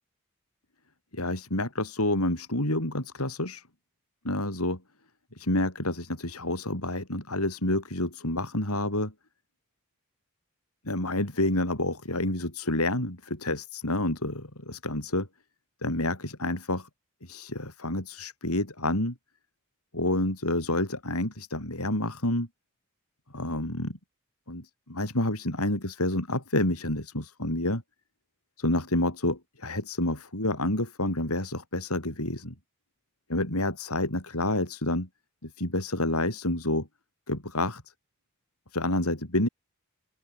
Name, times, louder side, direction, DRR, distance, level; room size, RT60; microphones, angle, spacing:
voice 1, 1.1-3.6 4.2-4.8 5.4-9.1 10.9-15.3 15.8-16.9 17.2-19.2 19.9-22.5 23.3-24.0 24.5-27.8 28.6-32.5 33.3-35.1 35.4-36.9 37.3-37.8 38.7-39.5, left 1 dB, 85° left, 7.0 m, -29 dB
open air
head